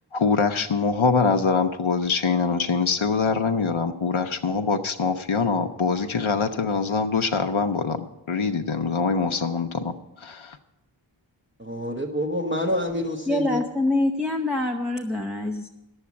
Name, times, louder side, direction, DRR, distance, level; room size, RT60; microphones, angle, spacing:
voice 1, 0.1-10.6, left 5 dB, 75° left, 6 dB, 0.8 m, -24 dB
voice 2, 11.6-13.6, left 1 dB, 25° right, 0 dB, 1.2 m, -27 dB
voice 3, 13.3-15.7, left 2 dB, ahead, 3 dB, 0.8 m, -25 dB
10.5 x 7.9 x 8.4 m, 0.95 s
wide cardioid pair, 40°, 48 cm